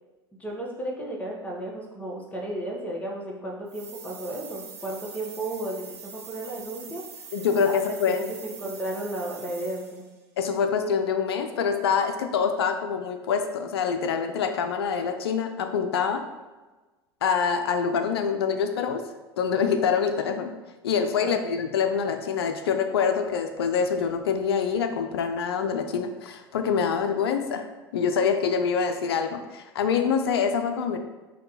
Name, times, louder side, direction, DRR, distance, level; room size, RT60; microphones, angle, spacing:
voice 1, 0.4-7.3 7.6-7.8 8.1-10.0 21.0-21.4, right 1 dB, 10° left, -2 dB, 0.9 m, -34 dB
sound 1, 3.7-10.1, right 6 dB, 65° right, 0.8 m, -44 dB
voice 2, 7.3-8.3 10.4-16.2 17.2-19.0 19.4-20.5 20.8-27.6 27.9-31.0, left 6 dB, 75° left, 6 dB, 0.4 m, -25 dB
5.0 x 2.2 x 2.8 m, 1.2 s
figure-of-eight pair, 75°, 13 cm